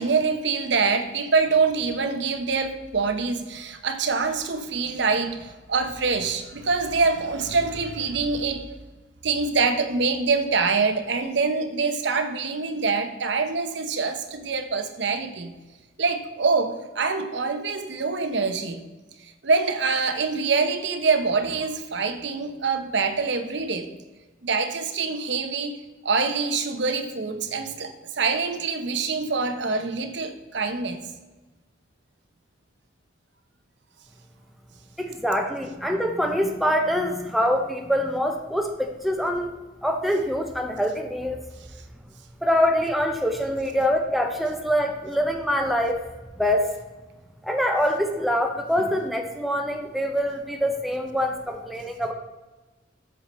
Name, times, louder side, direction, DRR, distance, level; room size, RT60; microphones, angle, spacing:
voice 1, 0.0-8.7 9.2-15.5 16.0-18.8 19.2-23.9 24.4-25.7 26.0-31.0, right 4 dB, 65° right, 7 dB, 0.9 m, -25 dB
voice 2, 35.0-39.5 39.8-41.4 42.4-46.0 46.4-46.7 47.4-52.1, equal, ahead, 3 dB, 0.7 m, -24 dB
8.2 x 6.8 x 4.2 m, 1.2 s
head